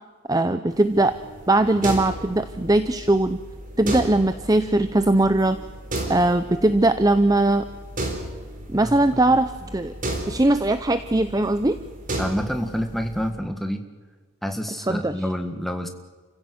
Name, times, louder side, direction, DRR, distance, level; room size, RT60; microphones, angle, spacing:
voice 1, 0.3-1.1 1.5-3.4 3.8-5.6 6.1-7.7 8.7-9.9 10.3-11.8 14.9-15.2, right 2 dB, 15° right, 11 dB, 0.6 m, -20 dB
sound 1, 0.7-13.3, right 1 dB, 40° right, 3.8 m, -34 dB
voice 2, 12.2-13.8 14.4-15.9, equal, ahead, 5 dB, 1.7 m, -28 dB
29.5 x 16.0 x 8.0 m, 1.5 s
head